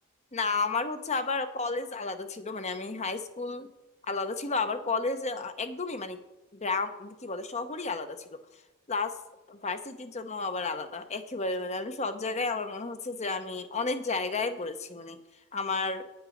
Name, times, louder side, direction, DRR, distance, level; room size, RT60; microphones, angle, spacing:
voice 1, 0.3-3.7 4.1-6.2 6.5-8.4 8.9-9.2 9.5-15.2 15.5-16.1, left 3 dB, 30° left, 10 dB, 0.9 m, -32 dB
9.5 x 8.1 x 6.4 m, 1.0 s
head